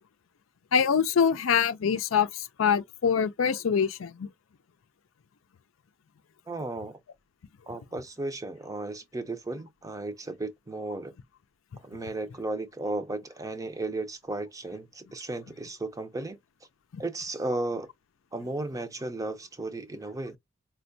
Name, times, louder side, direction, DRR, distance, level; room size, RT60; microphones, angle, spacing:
voice 1, 0.7-4.3 16.9-17.0, left 7 dB, 85° left, 0.5 m, -25 dB
voice 2, 6.5-7.0 7.7-11.1 11.8-16.4 17.0-17.9 18.3-20.4, right 2 dB, 15° right, 0.5 m, -34 dB
4.3 x 2.2 x 2.6 m
head